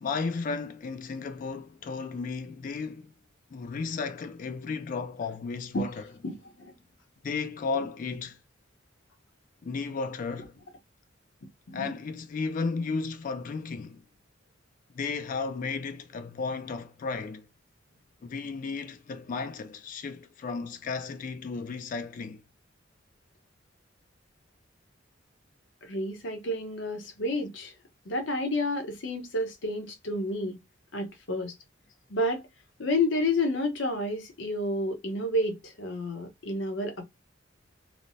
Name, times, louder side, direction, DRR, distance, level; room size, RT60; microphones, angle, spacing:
voice 1, 0.0-3.1 3.5-6.2 7.2-8.4 9.6-10.5 11.7-14.0 14.9-17.5 18.2-22.4, left 4 dB, 45° left, 0.3 m, -34 dB
voice 2, 5.7-6.3 6.6-6.7 11.7-11.9 25.8-27.7 28.1-30.6 30.9-31.5 32.1-32.5 32.8-37.0, left 1 dB, 75° left, 0.8 m, -30 dB
3.1 x 2.0 x 2.5 m
head